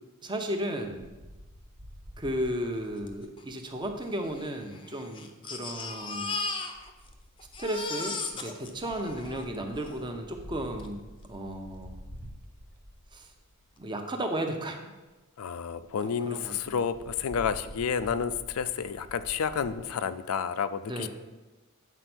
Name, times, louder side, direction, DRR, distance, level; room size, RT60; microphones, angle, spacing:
voice 1, 0.2-1.1 2.2-6.4 7.6-12.0 13.1-13.3 13.8-14.9 16.0-16.8 20.9-21.1, right 1 dB, 20° right, 4 dB, 0.8 m, -34 dB
Wind, 0.8-4.5 5.6-6.0 6.7-13.7 14.3-14.4 14.7-14.8 15.1-15.2 15.5-15.6 15.8-16.0 16.4-19.7, equal, 70° right, 1.4 m, -49 dB
Crying sobbing, 3.1-3.2 3.4-3.5 4.2-7.1 7.4-10.0 10.8-10.9 11.2-11.3, left 4 dB, 25° left, 0.6 m, -37 dB
voice 2, 15.4-21.1, left 7 dB, 90° left, 14 dB, 0.4 m, -30 dB
8.2 x 4.4 x 6.0 m, 1.1 s
head